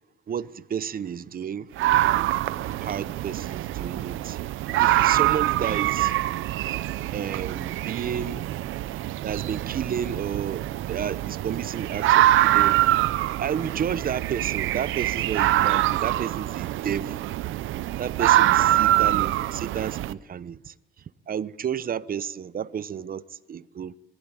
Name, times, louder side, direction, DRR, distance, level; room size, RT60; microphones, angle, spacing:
voice 1, 0.3-1.7 2.0-2.4 2.8-4.4 4.8-6.2 7.1-8.5 9.2-12.8 13.4-17.3 18.0-23.9, right 8 dB, 45° right, 0.9 m, -32 dB
sound 1, 1.8-20.1, right 14 dB, 85° right, 0.7 m, -24 dB
21.5 x 15.5 x 8.8 m
cardioid pair, 90°, 20 cm